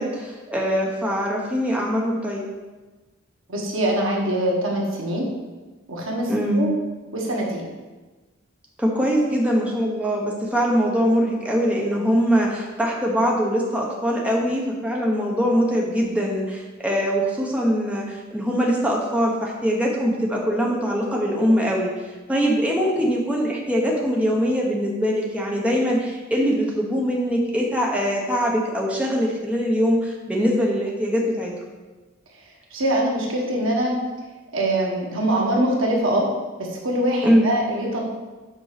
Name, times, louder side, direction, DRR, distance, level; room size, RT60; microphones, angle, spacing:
voice 1, 0.0-2.4 6.3-6.6 8.8-21.9 22.3-31.5 37.2-37.5, equal, 5° right, -2 dB, 1.0 m, -22 dB
voice 2, 3.5-5.3 5.9-6.7 7.1-7.7 14.2-14.3 32.7-34.0 34.5-36.3 36.6-38.0, right 1 dB, 70° right, -1 dB, 1.6 m, -23 dB
6.4 x 5.5 x 5.0 m, 1.2 s
head